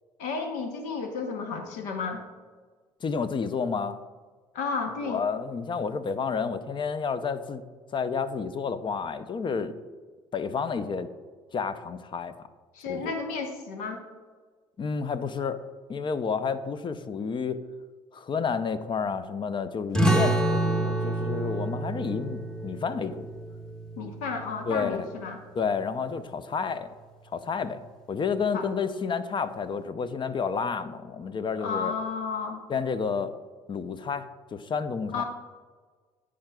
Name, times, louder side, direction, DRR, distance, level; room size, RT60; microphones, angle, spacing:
voice 1, 0.2-2.2 4.5-5.2 12.7-14.0 24.0-25.4 28.5-28.7 31.5-32.6 35.1-35.2, left 4 dB, 75° left, 5 dB, 0.8 m, -32 dB
voice 2, 3.0-4.0 5.0-7.6 7.9-9.7 10.3-11.1 11.5-12.3 12.9-13.1 14.8-15.6 15.9-17.6 18.1-23.3 24.7-25.0 25.6-26.9 27.3-27.8 28.1-31.9 32.7-33.3 33.7-35.2, left 5 dB, 35° left, 12 dB, 0.5 m, -30 dB
sound 1, 19.9-25.1, right 1 dB, 5° left, 0.9 m, -28 dB
10.0 x 4.8 x 2.3 m, 1.5 s
hypercardioid pair, 60°, 13 cm